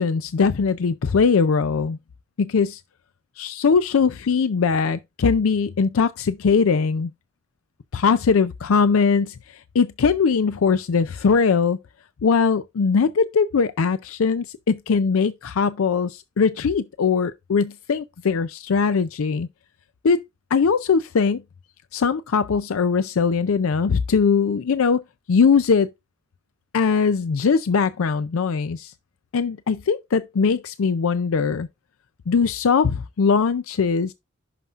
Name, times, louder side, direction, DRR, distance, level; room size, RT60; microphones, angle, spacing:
voice 1, 0.0-2.0 2.4-2.8 3.4-7.1 7.9-11.8 12.2-19.5 20.0-20.2 20.5-21.4 21.9-25.0 25.3-25.9 26.7-28.9 29.3-31.7 32.3-34.1, left 5 dB, 85° left, 0.5 m, -20 dB
11.0 x 5.8 x 2.4 m
head